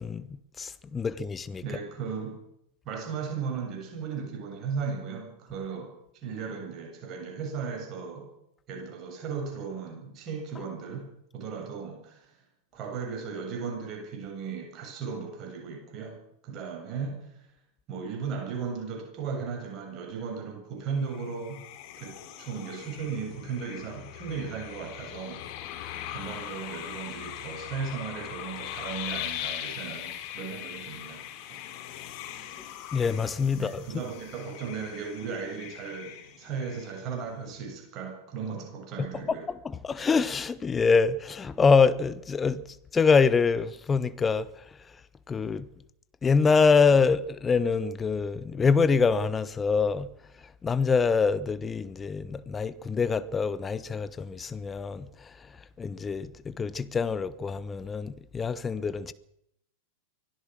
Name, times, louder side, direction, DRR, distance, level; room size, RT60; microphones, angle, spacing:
voice 1, 0.0-1.8 32.9-33.9 39.0-45.0 45.3-45.7 46.2-50.1 50.4-59.1, left 5 dB, 15° left, 1.1 m, -25 dB
voice 2, 1.6-2.4 2.8-8.3 8.7-12.3 12.7-16.2 16.4-17.5 17.9-21.6 22.0-25.5 26.1-31.6 33.5-39.5, right 5 dB, 35° right, 7.7 m, -36 dB
sound 1, 21.0-37.3, left 11 dB, 45° left, 3.3 m, -40 dB
24.5 x 16.5 x 6.4 m
figure-of-eight pair, 90°, 0 cm